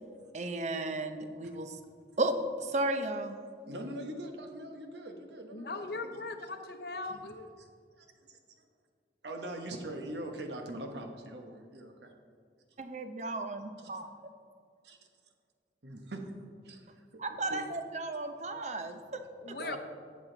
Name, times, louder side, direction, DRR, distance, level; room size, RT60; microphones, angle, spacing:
voice 1, 0.3-1.8 2.2-3.3 12.8-14.1 17.2-19.2 19.5-19.8, right 2 dB, 40° right, 8 dB, 0.6 m, -34 dB
voice 2, 3.7-6.2 7.0-7.1 7.6-7.7 8.0-8.4 9.2-12.1 13.8-13.9 14.8-15.0 15.8-16.2 16.6-17.2 17.5-17.6 19.6-19.8, right 1 dB, 75° right, 4 dB, 1.1 m, -42 dB
voice 3, 5.5-7.5 19.4-19.8, left 3 dB, 60° left, 7 dB, 0.7 m, -39 dB
12.0 x 7.2 x 3.9 m, 2.1 s
head